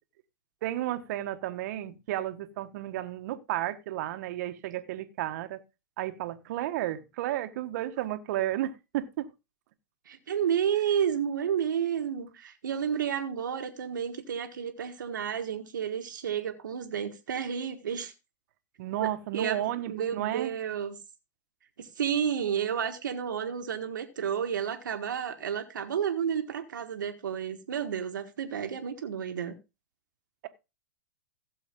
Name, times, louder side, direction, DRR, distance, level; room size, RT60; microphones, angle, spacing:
voice 1, 0.6-5.6 6.0-9.3 18.8-20.5, right 13 dB, 60° right, 1.5 m, -32 dB
voice 2, 10.1-18.1 19.0-20.9 21.8-29.6, right 8 dB, 85° right, 1.6 m, -31 dB
15.5 x 7.0 x 3.7 m
hypercardioid pair, 120°, 10 cm